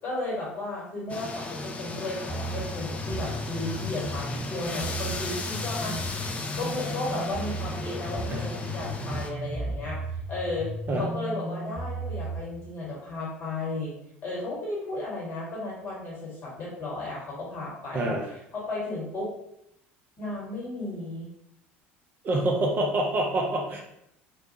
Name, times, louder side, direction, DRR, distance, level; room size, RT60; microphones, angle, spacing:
voice 1, 0.0-6.0 6.6-10.0 10.3-13.9 14.2-18.1 18.5-19.3 20.2-21.3, left 2 dB, 45° left, -5 dB, 1.4 m, -34 dB
sound 1, 1.1-9.3, left 2 dB, 20° left, 0.4 m, -36 dB
sound 2, 2.3-12.4, right 1 dB, ahead, 1.0 m, -35 dB
voice 2, 17.9-18.3 22.2-24.0, right 1 dB, 35° right, 0 dB, 0.5 m, -26 dB
2.4 x 2.2 x 2.8 m, 0.78 s
figure-of-eight pair, 65°, 6 cm